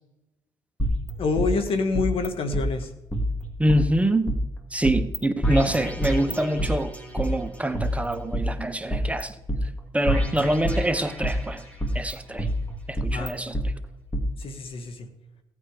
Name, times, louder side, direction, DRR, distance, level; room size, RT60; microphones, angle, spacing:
sound 1, 0.8-2.3 2.5-2.6 3.1-4.4 4.8-5.2 5.4-7.3 7.7-9.2 9.5-9.6 10.1-11.4 11.8-13.6 14.1-14.2, equal, 15° left, 2.6 m, -28 dB
voice 1, 1.2-2.9 13.1-13.3 14.4-15.1, left 4 dB, 60° left, 6 dB, 1.8 m, -27 dB
voice 2, 3.6-4.3 4.7-9.4 9.9-11.6 11.9-12.5 12.9-13.7, right 1 dB, 10° right, 10 dB, 0.9 m, -25 dB
16.5 x 8.5 x 5.1 m, 0.94 s
supercardioid pair, 65°, 11 cm